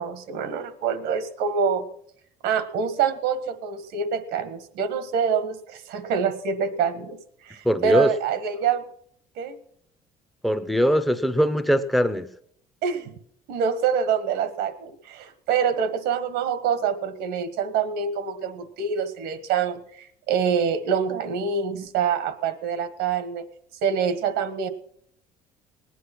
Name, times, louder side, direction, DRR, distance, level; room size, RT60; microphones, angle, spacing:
voice 1, 0.0-1.8 2.4-7.2 7.5-8.8 9.4-9.6 12.8-13.2 13.5-23.4 23.8-24.7, right 6 dB, 85° right, 11 dB, 1.6 m, -26 dB
voice 2, 7.6-8.1 10.4-12.3, equal, ahead, 9 dB, 0.7 m, -21 dB
19.0 x 10.0 x 6.0 m, 0.66 s
cardioid pair, 165°, 16 cm